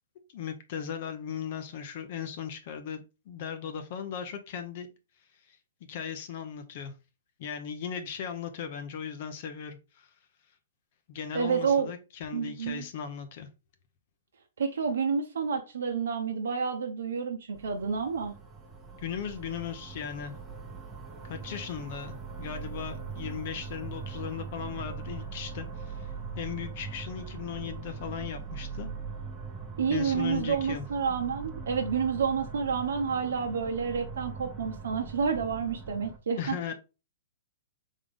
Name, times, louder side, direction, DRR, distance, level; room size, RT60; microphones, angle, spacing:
voice 1, 0.3-4.9 5.4-5.6 5.9-6.9 7.4-10.1 11.1-13.5 19.0-20.3 21.2-28.9 29.9-30.9 36.4-36.7, left 8 dB, 50° left, 0.7 m, -37 dB
voice 2, 11.3-11.9 12.3-12.8 14.6-18.3 29.8-36.7, right 6 dB, 80° right, 0.7 m, -29 dB
sound 1, 17.5-36.2, right 5 dB, 10° right, 1.0 m, -41 dB
3.7 x 3.6 x 3.5 m
hypercardioid pair, 135°, 0 cm